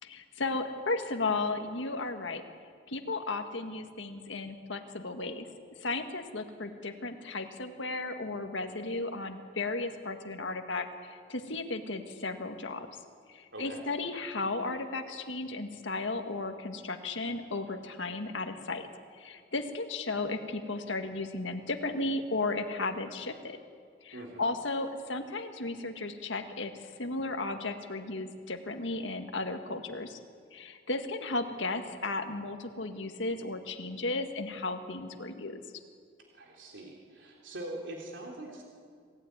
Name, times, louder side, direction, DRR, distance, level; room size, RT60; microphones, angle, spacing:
voice 1, 0.0-2.4 2.9-5.5 5.8-12.9 13.3-18.9 19.1-23.6 24.0-26.7 27.0-30.2 30.5-35.6, left 3 dB, 80° left, 5 dB, 1.8 m, -35 dB
voice 2, 13.5-13.9 24.1-24.5 36.3-38.6, right 1 dB, 75° right, -1 dB, 3.4 m, -43 dB
26.5 x 15.5 x 9.5 m, 2.1 s
head